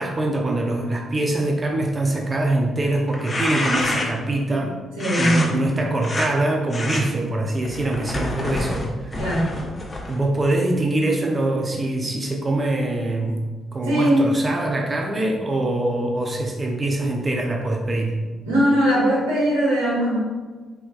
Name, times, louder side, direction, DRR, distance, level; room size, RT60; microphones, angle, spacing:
voice 1, 0.0-4.8 5.2-9.1 10.1-13.5 13.7-18.2, right 2 dB, 35° right, 1 dB, 0.5 m, -23 dB
sound 1, 3.1-4.3 5.0-5.5 6.0-6.3 6.7-7.0 7.6-10.2, left 2 dB, 30° left, 0.8 m, -27 dB
voice 2, 5.0-5.5 9.1-9.5 13.8-14.2 18.4-20.2, equal, 90° right, -6 dB, 1.0 m, -20 dB
3.4 x 3.1 x 2.4 m, 1.3 s
hypercardioid pair, 45°, 0 cm